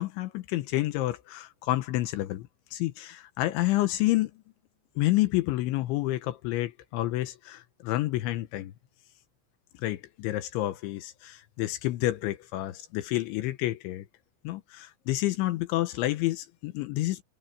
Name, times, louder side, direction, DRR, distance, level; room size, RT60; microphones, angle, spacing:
voice 1, 0.0-4.3 5.0-8.7 9.8-14.1 14.4-17.2, left 16 dB, 85° left, 3.4 m, -29 dB
omnidirectional pair, 5.3 m